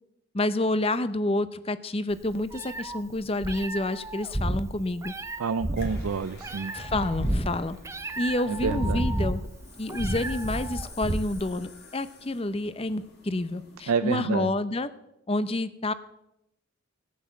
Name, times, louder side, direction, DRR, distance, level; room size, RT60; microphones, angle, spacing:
voice 1, 0.3-5.1 6.7-7.8 8.2-9.4 9.8-14.9 15.3-15.9, left 2 dB, 25° left, 14 dB, 0.7 m, -28 dB
Meow, 2.1-11.5, right 1 dB, 15° right, 0.5 m, -31 dB
voice 2, 5.4-6.7 8.5-9.1 13.9-14.5, right 5 dB, 80° right, 11 dB, 0.5 m, -28 dB
sound 1, 5.8-14.0, left 3 dB, 50° left, 2.9 m, -50 dB
17.0 x 8.5 x 7.2 m, 0.85 s
head